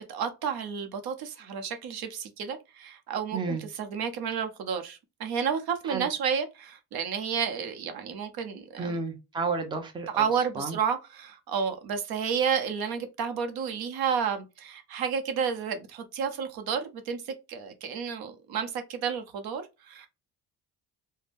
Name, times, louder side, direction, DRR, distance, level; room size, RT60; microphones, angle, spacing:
voice 1, 0.1-9.0 10.1-20.1, right 7 dB, 70° right, 0.7 m, -31 dB
voice 2, 3.3-3.6 5.8-6.1 8.8-10.3 10.6-10.8, right 4 dB, 10° right, 0.5 m, -31 dB
2.6 x 2.1 x 3.3 m
cardioid pair, 115°, 38 cm